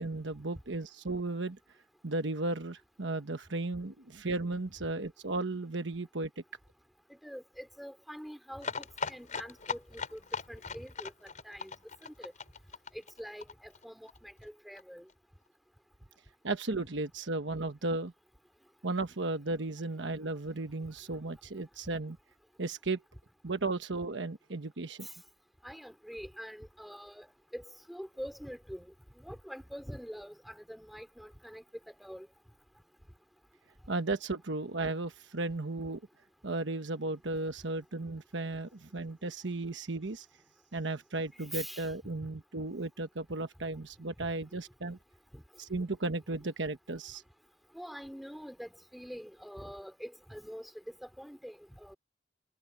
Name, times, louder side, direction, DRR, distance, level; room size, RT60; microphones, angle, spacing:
voice 1, 0.0-1.6 2.0-6.4 16.4-18.1 18.8-22.2 22.6-23.0 23.4-25.1 33.9-36.0 36.4-40.3 40.7-45.0 45.6-47.2, right 2 dB, 65° right, 1.2 m, -35 dB
voice 2, 7.1-11.8 12.0-12.3 12.9-15.1 25.0-25.1 25.6-27.3 27.5-32.3 41.5-41.9 45.3-45.4 47.7-52.0, equal, ahead, 4.3 m, -45 dB
sound 1, 8.6-14.2 14.4-14.5 14.8-14.9 15.1-15.2, left 5 dB, 40° left, 4.8 m, -39 dB
head